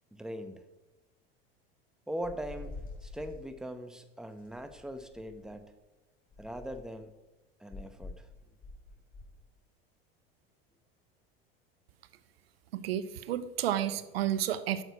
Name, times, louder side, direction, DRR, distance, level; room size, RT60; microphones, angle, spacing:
voice 1, 0.1-0.6 2.1-2.7 3.0-5.7 6.4-7.1 7.6-8.3, equal, ahead, 9 dB, 0.9 m, -41 dB
sound 1, 2.2-3.5 4.4-5.7 6.3-7.0 7.7-9.3, left 3 dB, 30° left, 3.4 m, -47 dB
voice 2, 12.7-14.8, right 11 dB, 85° right, 14 dB, 0.7 m, -31 dB
9.1 x 6.6 x 4.8 m, 1.1 s
hypercardioid pair, 85°, 30 cm